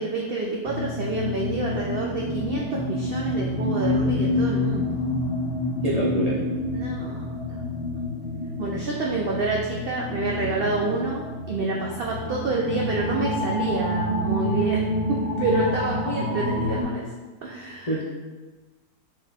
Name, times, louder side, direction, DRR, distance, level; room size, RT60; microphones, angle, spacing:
voice 1, 0.0-5.0 6.7-7.2 8.6-14.8 15.1-17.1 17.4-18.0, right 3 dB, 90° right, -2 dB, 0.5 m, -28 dB
sound 1, 0.6-16.8, left 1 dB, 55° right, 2.0 m, -28 dB
voice 2, 5.8-6.4 17.9-18.0, equal, 55° left, -8 dB, 0.4 m, -25 dB
4.6 x 3.1 x 3.4 m, 1.3 s
omnidirectional pair, 1.6 m